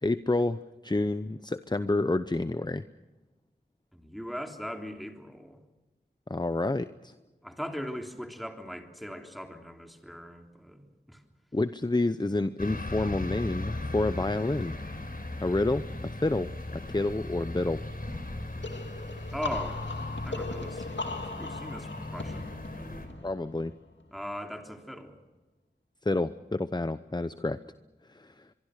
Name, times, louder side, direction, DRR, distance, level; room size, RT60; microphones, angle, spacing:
voice 1, 0.0-2.8 6.3-7.1 11.5-14.7 15.4-17.8 23.2-23.7 26.0-27.6 28.1-28.5, left 2 dB, 25° left, 12 dB, 0.8 m, -29 dB
voice 2, 3.9-5.6 7.4-11.2 19.3-19.8 20.2-20.9 21.3-23.1 24.1-25.2, equal, ahead, 3 dB, 3.3 m, -40 dB
sound 1, 12.6-23.1, left 2 dB, 55° left, 4.2 m, -37 dB
sound 2, 18.6-24.2, left 3 dB, 85° left, 2.5 m, -39 dB
24.5 x 23.5 x 6.5 m, 1.1 s
wide cardioid pair, 45°, 18 cm